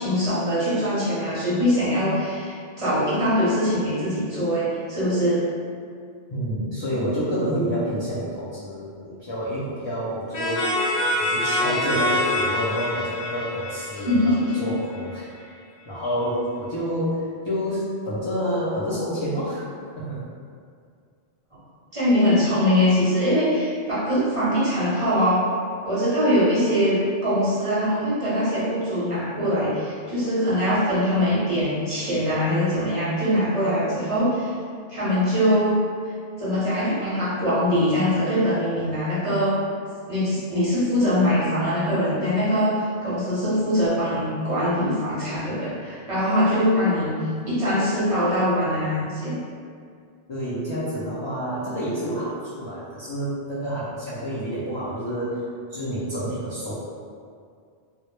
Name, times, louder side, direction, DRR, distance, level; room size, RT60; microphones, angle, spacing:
voice 1, 0.0-5.5 14.1-14.6 21.9-25.4 25.8-34.5 34.9-35.8 36.4-39.6 40.1-47.2 47.5-49.4, equal, 40° right, -10 dB, 0.6 m, -22 dB
voice 2, 6.3-10.7 11.2-15.3 15.9-19.7 20.0-20.2 50.3-56.7, equal, 45° left, -10 dB, 0.3 m, -28 dB
sound 1, 10.3-14.9, left 1 dB, 80° left, 0.9 m, -25 dB
2.2 x 2.0 x 3.0 m, 2.2 s
omnidirectional pair, 1.1 m